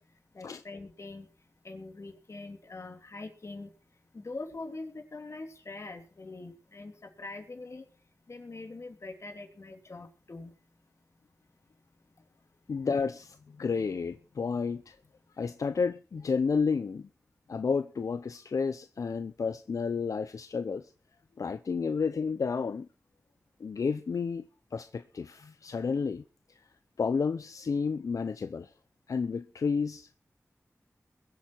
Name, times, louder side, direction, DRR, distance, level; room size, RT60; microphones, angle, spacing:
voice 1, 0.3-1.3 1.6-3.7 4.1-7.9 8.3-10.5, left 3 dB, 60° left, 3.1 m, -43 dB
voice 2, 12.7-15.0 15.4-17.1 17.5-20.9 21.4-22.9 23.6-26.2 27.0-28.7 29.1-30.1, left 5 dB, 85° left, 0.6 m, -31 dB
22.0 x 8.5 x 4.5 m
wide cardioid pair, 60°, 6 cm